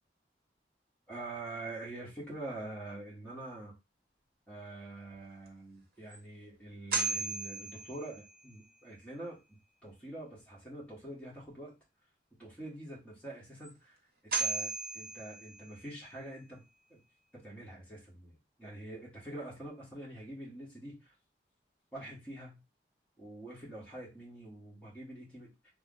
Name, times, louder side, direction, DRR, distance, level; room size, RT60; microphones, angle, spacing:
voice 1, 1.1-3.7 4.5-11.7 12.4-13.9 14.4-16.6 16.9-17.0 17.3-21.1 21.9-22.6 23.2-25.5, right 2 dB, 10° left, -5 dB, 1.3 m, -45 dB
sound 1, 5.5-5.6 6.1-6.2 6.9-8.5 13.6-13.7 14.3-16.0, right 4 dB, 55° right, 0.9 m, -36 dB
3.4 x 2.0 x 3.7 m, 0.25 s
head